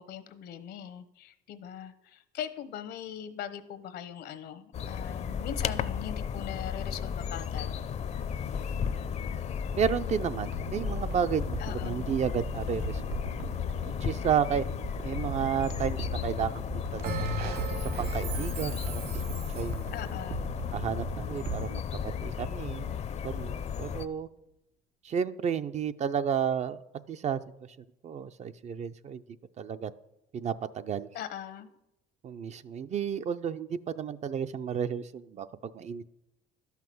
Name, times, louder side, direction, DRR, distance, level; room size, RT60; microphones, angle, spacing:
voice 1, 0.0-7.8 11.6-12.1 19.9-20.4 31.1-31.7, left 9 dB, 75° left, 13 dB, 1.0 m, -40 dB
sound 1, 4.7-24.1, left 7 dB, 40° left, 0.6 m, -34 dB
voice 2, 9.7-13.0 14.0-14.6 15.0-16.6 16.9-17.3 17.8-19.8 20.7-23.0 23.2-24.3 25.0-26.8 27.1-27.4 28.0-29.2 29.6-29.9 30.3-31.1 32.2-36.1, right 7 dB, 40° right, 11 dB, 0.5 m, -32 dB
sound 2, 10.5-23.0 23.3-23.4, right 6 dB, 85° right, 1.1 m, -40 dB
Bell, 17.0-19.8, right 2 dB, 65° right, 1.8 m, -37 dB
11.5 x 5.8 x 7.7 m, 0.87 s
cardioid pair, 110°, 17 cm